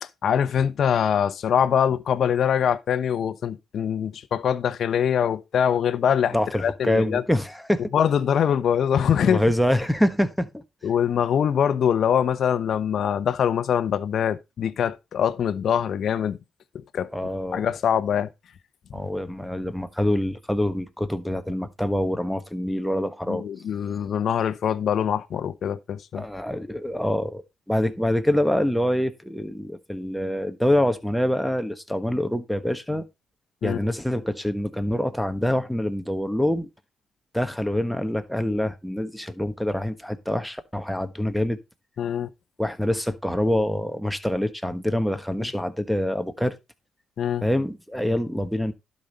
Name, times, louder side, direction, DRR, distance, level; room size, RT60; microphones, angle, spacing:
voice 1, 0.0-7.2 7.9-9.4 10.8-16.4 16.7-17.1 17.5-18.3 18.9-19.0 23.3-26.2 33.6-33.9 42.0-42.3 45.4-45.5 47.2-47.4, left 8 dB, 60° left, 0.8 m, -23 dB
voice 2, 6.3-7.9 9.2-10.6 17.1-17.7 18.9-23.4 26.1-33.0 33.6-36.7 37.3-41.6 42.6-46.5 47.4-48.7, left 1 dB, ahead, 1.3 m, -25 dB
11.5 x 5.3 x 4.1 m
cardioid pair, 90°, 0 cm